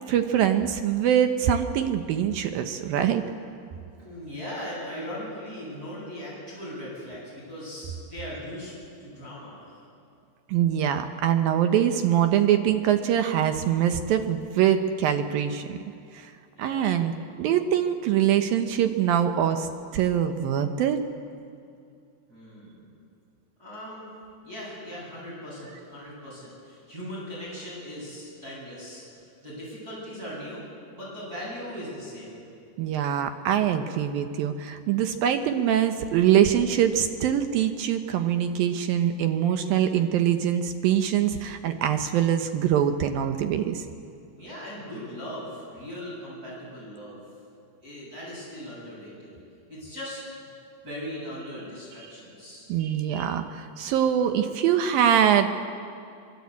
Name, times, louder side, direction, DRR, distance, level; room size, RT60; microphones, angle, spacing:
voice 1, 0.1-3.2 10.5-15.8 16.1-16.3 16.6-19.7 19.9-21.0 32.8-43.8 52.7-55.5, right 9 dB, 75° right, 7 dB, 2.2 m, -23 dB
voice 2, 3.9-8.7 9.0-9.8 16.5-16.9 22.3-22.8 23.6-24.1 24.4-30.7 30.9-32.4 44.3-47.2 47.8-49.3 49.7-50.5 50.8-52.7, equal, 20° right, -6 dB, 8.3 m, -39 dB
25.0 x 22.5 x 8.4 m, 2.4 s
omnidirectional pair, 5.3 m